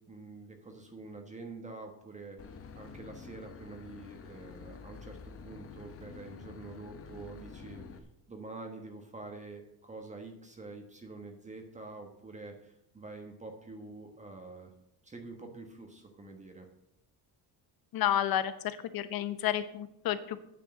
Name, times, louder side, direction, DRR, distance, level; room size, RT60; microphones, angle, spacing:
voice 1, 0.1-14.7 15.0-16.7, right 3 dB, 20° right, 3 dB, 1.3 m, -47 dB
Boat Water vehicle / Engine, 2.4-8.0, left 5 dB, 35° left, 1.0 m, -48 dB
voice 2, 17.9-20.4, left 11 dB, 65° left, 12 dB, 1.0 m, -31 dB
9.4 x 6.6 x 7.7 m, 0.82 s
cardioid pair, 140°, 39 cm